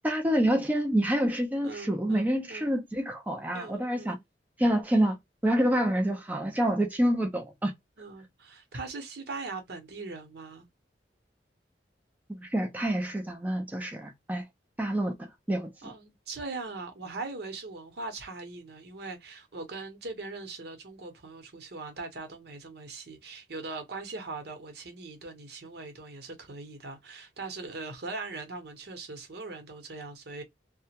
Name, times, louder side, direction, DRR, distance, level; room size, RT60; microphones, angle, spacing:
voice 1, 0.0-4.2 4.6-5.2 5.4-7.7 12.3-14.4 14.8-15.7, right 1 dB, 10° right, 0.4 m, -27 dB
voice 2, 1.6-2.7 3.5-4.2 5.7-5.9 8.0-10.7 15.8-30.4, right 3 dB, 65° right, 0.9 m, -40 dB
2.4 x 2.1 x 2.8 m
head